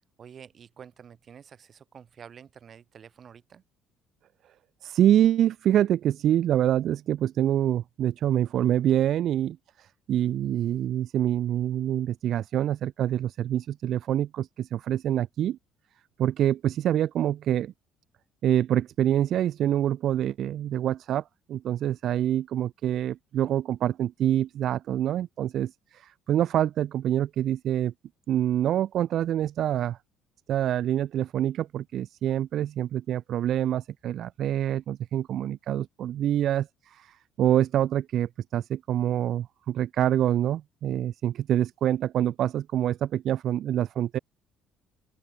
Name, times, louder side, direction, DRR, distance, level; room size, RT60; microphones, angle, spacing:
voice 1, 0.2-3.6, right 7 dB, 45° right, 2.0 m, -49 dB
voice 2, 4.8-15.6 16.2-17.7 18.4-21.2 21.5-27.9 28.3-30.0 30.5-44.2, right 11 dB, 60° right, 0.6 m, -26 dB
open air
cardioid pair, 90°, 0 cm